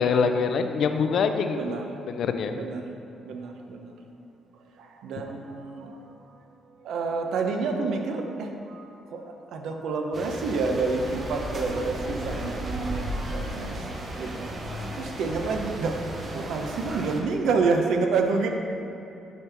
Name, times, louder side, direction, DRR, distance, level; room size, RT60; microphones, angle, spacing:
voice 1, 0.0-2.5, left 5 dB, 65° left, 7 dB, 0.4 m, -25 dB
voice 2, 1.5-2.0 2.5-2.9 3.2-4.0 4.8-6.4 6.8-13.9 14.2-14.5 14.9-18.5, right 4 dB, 80° right, 4 dB, 0.6 m, -29 dB
sound 1, 10.1-17.2, right 1 dB, 40° right, 0.8 m, -34 dB
7.1 x 4.7 x 3.4 m, 2.8 s
cardioid pair, 90°, 0 cm